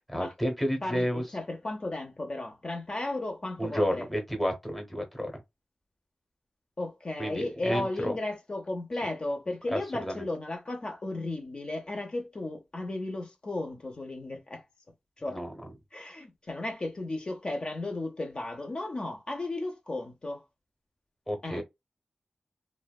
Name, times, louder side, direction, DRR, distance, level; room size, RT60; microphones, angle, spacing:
voice 1, 0.0-1.2 3.6-5.3 7.2-8.1 9.7-10.1 15.3-15.5 21.3-21.6, equal, 5° left, 0.8 m, -31 dB
voice 2, 0.8-4.1 6.8-14.6 15.2-15.4 15.9-20.4 21.4-21.6, left 2 dB, 45° left, 0.6 m, -35 dB
2.6 x 2.1 x 2.2 m
wide cardioid pair, 80°, 2 cm